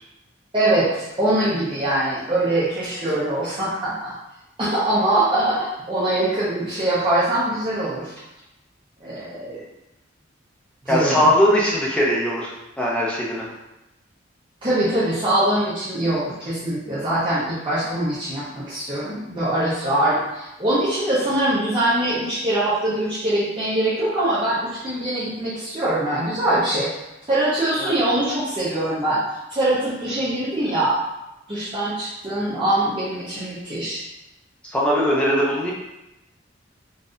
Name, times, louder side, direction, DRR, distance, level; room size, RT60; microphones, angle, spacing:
voice 1, 0.5-4.1 4.6-8.1 9.0-9.6 10.8-11.2 14.6-26.9 27.3-29.2 29.5-31.0 31.5-34.0, right 1 dB, 25° right, -11 dB, 0.7 m, -23 dB
voice 2, 10.9-13.4 27.8-27.9 34.6-35.7, equal, 5° left, -5 dB, 0.5 m, -20 dB
4.0 x 2.6 x 2.5 m, 0.93 s
head